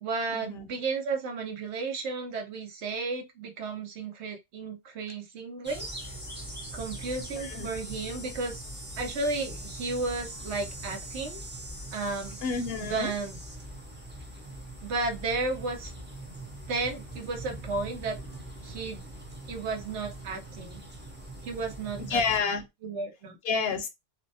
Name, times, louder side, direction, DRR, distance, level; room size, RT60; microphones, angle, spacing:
voice 1, 0.0-5.9 6.7-8.6 9.0-11.4 11.9-12.4 12.8-13.4 14.8-15.9 16.7-18.2 18.6-19.0 19.5-20.8 21.4-22.6 22.8-23.4, right 3 dB, 80° right, 1.0 m, -33 dB
sound 1, 5.6-22.4, right 1 dB, 15° right, 0.5 m, -42 dB
voice 2, 7.3-7.7 12.4-13.1 22.0-22.6 23.4-23.9, left 5 dB, 65° left, 0.7 m, -29 dB
2.6 x 2.1 x 2.6 m
omnidirectional pair, 1.2 m